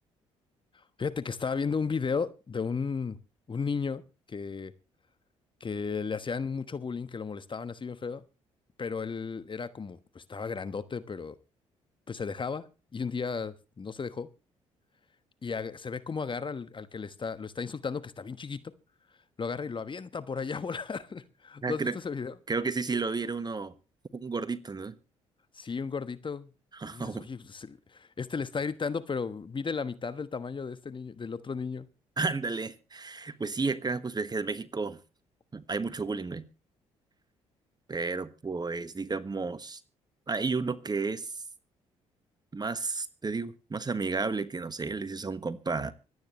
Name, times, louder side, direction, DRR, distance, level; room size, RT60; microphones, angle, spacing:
voice 1, 1.0-3.2 3.5-4.0 4.3-4.7 5.6-8.2 8.8-11.3 12.1-12.6 12.9-14.3 15.4-18.6 19.4-22.3 25.5-26.5 26.8-31.9, left 5 dB, 35° left, 1.3 m, -34 dB
voice 2, 21.6-22.0 22.5-23.7 24.1-24.9 26.7-27.3 32.2-35.0 35.5-36.5 37.9-39.8 40.3-41.3 42.5-45.9, right 4 dB, 25° right, 1.3 m, -32 dB
25.0 x 9.4 x 3.2 m
hypercardioid pair, 50°, 15 cm